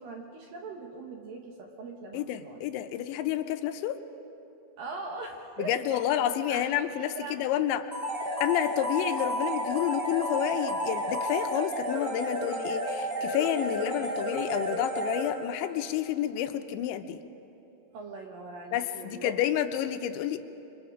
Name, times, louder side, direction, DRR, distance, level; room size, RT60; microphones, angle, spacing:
voice 1, 0.0-2.6 4.8-6.0 6.5-7.4 17.9-19.3, right 3 dB, 60° right, 1 dB, 2.5 m, -41 dB
voice 2, 2.1-4.0 5.6-7.9 8.4-17.2 18.7-20.4, left 11 dB, 80° left, 8 dB, 3.0 m, -30 dB
sound 1, 7.9-15.7, equal, 15° right, 3.7 m, -32 dB
27.5 x 25.0 x 5.0 m, 2.9 s
omnidirectional pair, 5.4 m